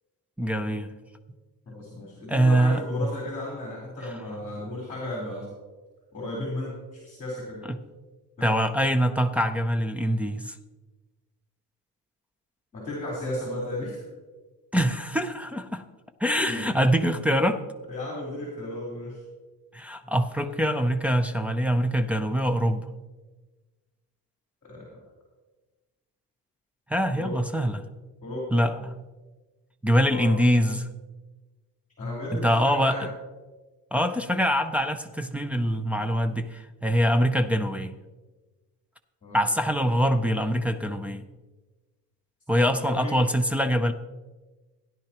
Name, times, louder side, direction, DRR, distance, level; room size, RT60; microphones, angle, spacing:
voice 1, 0.4-0.9 2.3-2.8 7.7-7.8 8.4-10.5 14.7-15.8 16.2-17.6 19.7-22.9 26.9-27.8 28.5-29.0 29.8-30.9 32.4-33.1 33.9-37.9 39.3-41.2 42.5-43.9, equal, 5° right, 4 dB, 0.3 m, -24 dB
voice 2, 1.7-5.5 6.1-7.6 8.4-8.6 12.7-14.0 16.4-16.8 17.9-19.2 24.6-25.0 27.1-27.4 28.2-28.5 29.9-30.3 32.0-33.0 39.2-39.5 42.5-43.1, left 1 dB, 20° left, -4 dB, 3.6 m, -34 dB
16.5 x 10.5 x 2.9 m, 1.2 s
cardioid pair, 150°, 39 cm